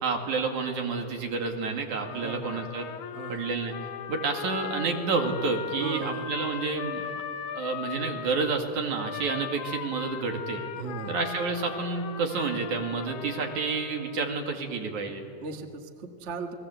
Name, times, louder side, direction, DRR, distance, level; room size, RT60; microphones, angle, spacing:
voice 1, 0.0-2.9 3.3-3.7 4.1-7.0 7.5-10.6 11.1-15.2, right 4 dB, 75° right, 3 dB, 3.7 m, -29 dB
Trumpet, 2.0-8.5 8.9-14.3, left 9 dB, 80° left, 2.7 m, -39 dB
voice 2, 2.1-2.6 3.1-3.7 5.8-6.5 10.8-11.2 15.4-16.5, right 4 dB, 35° right, 5 dB, 1.3 m, -38 dB
29.5 x 20.5 x 8.0 m, 2.6 s
omnidirectional pair, 3.4 m